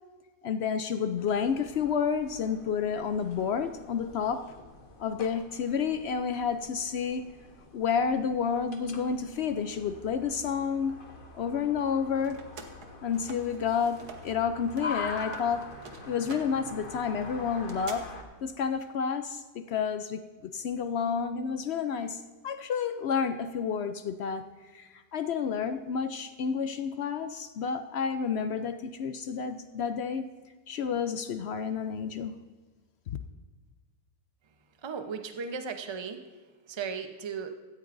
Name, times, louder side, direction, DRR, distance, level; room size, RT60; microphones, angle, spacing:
voice 1, 0.4-4.4 5.0-7.3 7.7-10.9 11.3-12.4 13.0-15.7 16.1-18.1 18.4-24.4 24.7-30.2 30.7-32.3 33.1-33.2, left 6 dB, 70° left, 10 dB, 0.6 m, -30 dB
sound 1, 1.2-18.2, left 4 dB, 40° left, 1.2 m, -44 dB
sound 2, 11.8-14.4 14.6-18.0, right 5 dB, 80° right, 1.6 m, -48 dB
voice 2, 34.8-36.2 36.7-37.5, right 5 dB, 30° right, 7 dB, 0.5 m, -36 dB
16.5 x 14.0 x 2.6 m, 1.4 s
omnidirectional pair, 1.6 m